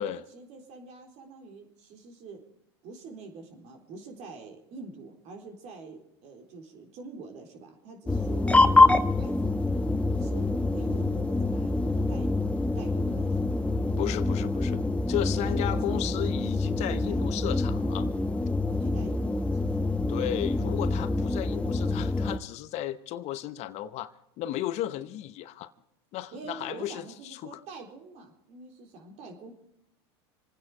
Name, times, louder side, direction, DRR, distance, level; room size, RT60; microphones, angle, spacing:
voice 1, 0.0-2.4 2.8-9.6 10.2-12.3 12.7-13.6 15.1-16.4 16.8-17.3 17.8-18.1 18.6-19.9 26.3-29.5, right 3 dB, 55° right, 3.9 m, -46 dB
sound 1, 8.1-22.4, left 2 dB, 10° left, 1.0 m, -26 dB
voice 2, 14.0-14.8 15.1-18.1 20.1-24.1 24.4-25.7 26.1-27.6, left 13 dB, 55° left, 0.9 m, -34 dB
27.0 x 9.7 x 4.9 m
hypercardioid pair, 100°, 14 cm